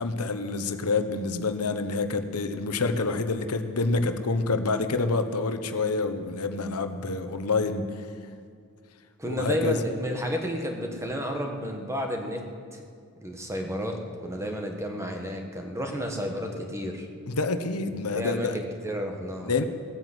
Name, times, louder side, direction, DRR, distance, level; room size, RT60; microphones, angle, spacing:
voice 1, 0.0-8.1 9.2-9.8 11.0-11.1 14.4-14.5 17.3-18.6 19.5-19.6, left 3 dB, 85° left, 8 dB, 1.0 m, -27 dB
voice 2, 9.2-12.4 12.7-12.8 13.2-17.1 18.1-19.5, equal, 15° right, 2 dB, 1.5 m, -31 dB
17.5 x 9.2 x 7.9 m, 2.2 s
head